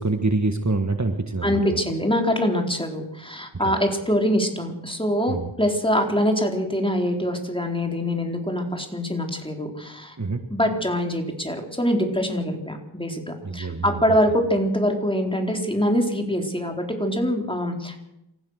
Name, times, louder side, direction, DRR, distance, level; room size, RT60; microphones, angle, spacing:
voice 1, 0.0-1.8 3.6-3.7 5.3-5.5 10.2-10.4 13.4-14.2, right 3 dB, 35° right, 6 dB, 1.7 m, -26 dB
voice 2, 1.4-10.2 10.5-18.0, equal, 10° left, 3 dB, 4.1 m, -24 dB
28.5 x 15.0 x 6.6 m, 0.86 s
wide cardioid pair, 45°, 48 cm